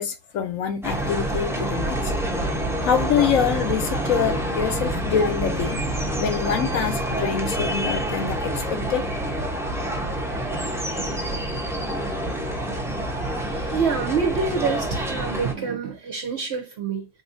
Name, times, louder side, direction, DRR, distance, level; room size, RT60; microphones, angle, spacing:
voice 1, 0.0-2.1 2.8-5.8 6.2-9.1, left 7 dB, 65° left, 0.9 m, -25 dB
sound 1, 0.8-15.5, right 1 dB, 5° right, 0.4 m, -27 dB
voice 2, 13.4-17.1, right 5 dB, 55° right, 0.8 m, -27 dB
4.1 x 2.6 x 2.6 m
omnidirectional pair, 1.6 m